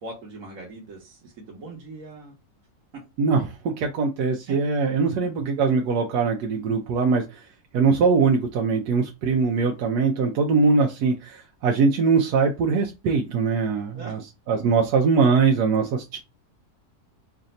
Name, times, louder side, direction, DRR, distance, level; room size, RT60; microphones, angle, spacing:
voice 1, 0.0-2.3 2.9-3.0 4.5-4.6 13.9-14.2, right 2 dB, 60° right, 1.3 m, -40 dB
voice 2, 3.2-7.4 7.7-14.2 14.5-16.2, right 5 dB, 90° right, 1.2 m, -22 dB
3.3 x 2.6 x 4.0 m
omnidirectional pair, 1.7 m